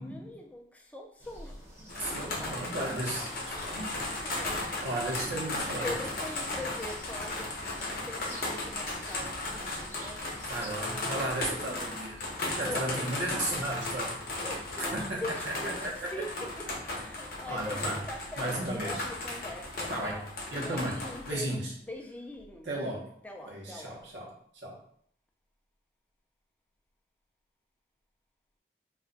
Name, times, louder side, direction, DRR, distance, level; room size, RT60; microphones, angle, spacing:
voice 1, 0.0-1.6 2.0-2.9 3.5-3.8 4.2-4.8 5.3-5.4 5.8-10.2 10.8-11.3 12.3-13.1 14.4-16.7 16.9-24.0, left 1 dB, 10° left, 1 dB, 0.3 m, -43 dB
sound 1, 1.2-10.7, right 1 dB, 15° right, 0.7 m, -50 dB
sound 2, 1.9-21.4, left 2 dB, 50° left, 0.6 m, -36 dB
voice 2, 1.9-3.3 3.7-3.9 4.8-5.9 10.5-12.2 12.6-14.2 14.9-15.5 15.8-16.1 17.4-18.0 18.4-19.0 19.9-20.2 20.5-21.7 22.6-23.1 23.5-24.4 24.6-24.8, right 1 dB, 80° right, -3 dB, 0.9 m, -34 dB
2.4 x 2.2 x 3.8 m, 0.62 s
head